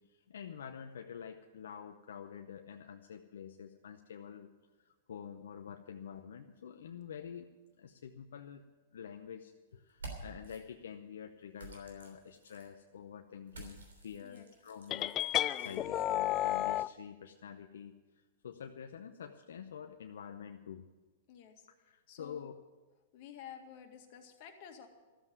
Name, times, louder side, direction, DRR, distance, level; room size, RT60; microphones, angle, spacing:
voice 1, 0.1-4.5 4.8-7.5 7.8-8.6 8.9-15.1 15.4-18.0 18.4-20.8 21.7-22.5, left 8 dB, 75° left, 5 dB, 0.7 m, -48 dB
sound 1, 9.9-10.6 11.6-12.7 13.5-15.8, right 3 dB, 85° right, 3.3 m, -50 dB
voice 2, 14.2-14.5 21.3-21.7 22.1-22.5 23.1-24.9, left 8 dB, 50° left, 4 dB, 2.0 m, -52 dB
sound 2, 14.9-16.9, left 13 dB, 35° left, 0.4 m, -32 dB
13.5 x 7.5 x 9.5 m, 1.3 s
hypercardioid pair, 120°, 0 cm